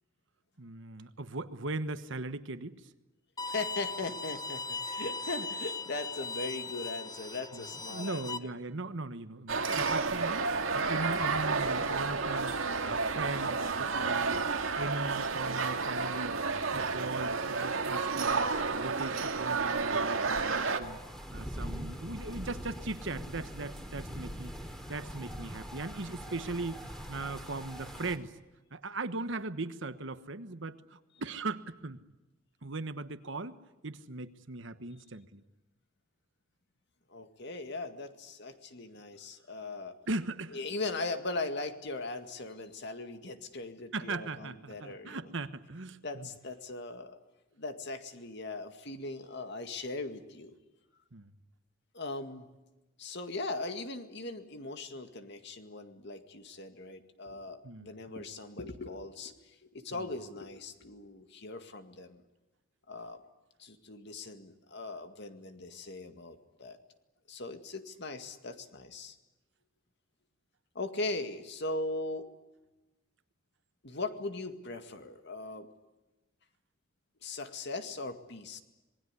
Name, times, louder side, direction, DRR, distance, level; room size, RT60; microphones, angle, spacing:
voice 1, 0.6-2.8 7.5-14.5 14.7-16.4 16.7-21.0 21.3-24.5 24.9-26.8 27.1-28.3 28.7-32.0 32.6-33.6 33.8-35.4 40.1-40.6 43.9-46.3 51.1-51.3 57.6-58.2 59.9-60.1, right 3 dB, 65° right, 11 dB, 1.2 m, -39 dB
Bowed string instrument, 3.4-8.4, left 4 dB, 20° left, 1.0 m, -39 dB
voice 2, 3.5-8.5 37.1-40.0 40.5-45.2 46.0-47.2 47.6-50.5 51.9-52.5 53.0-62.2 62.9-63.2 63.6-66.8 67.3-69.2 70.7-72.3 73.8-75.7 77.2-78.6, left 2 dB, 60° left, 7 dB, 2.1 m, -39 dB
sound 1, 9.5-20.8, right 4 dB, 85° right, 2.0 m, -31 dB
sound 2, 20.8-28.2, equal, ahead, 2.8 m, -42 dB
26.5 x 20.5 x 9.9 m, 1.1 s
head